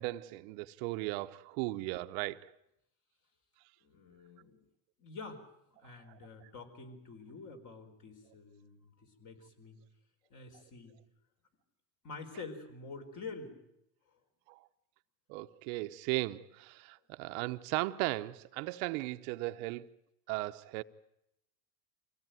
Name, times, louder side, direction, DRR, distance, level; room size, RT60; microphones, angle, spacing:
voice 1, 0.0-2.5 14.5-14.6 15.3-19.9 20.3-20.8, right 19 dB, 60° right, 0.9 m, -36 dB
voice 2, 3.8-4.6 5.0-5.4 5.8-9.8 10.3-11.0 12.0-13.6, left 4 dB, 40° left, 4.5 m, -47 dB
25.0 x 17.0 x 9.2 m
supercardioid pair, 130°, 46 cm